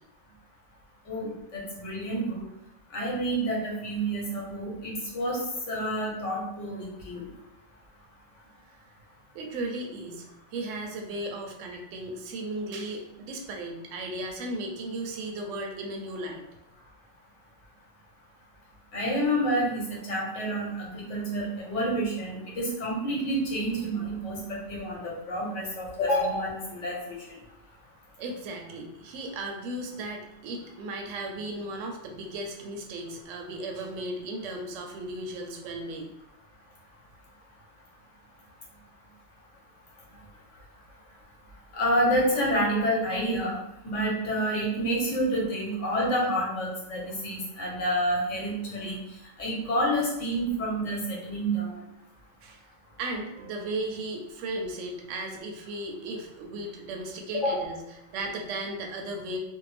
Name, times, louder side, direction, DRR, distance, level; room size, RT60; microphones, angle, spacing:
voice 1, 1.1-2.4 2.9-5.4 5.7-7.2 18.9-27.2 41.7-43.5 43.8-49.0 49.4-51.8 57.3-57.6, equal, 75° left, -3 dB, 1.2 m, -28 dB
voice 2, 9.3-16.4 28.2-36.1 52.4-52.6 53.0-57.8 58.1-59.4, right 2 dB, 80° right, 2 dB, 0.9 m, -36 dB
2.6 x 2.1 x 3.2 m, 0.86 s
omnidirectional pair, 1.3 m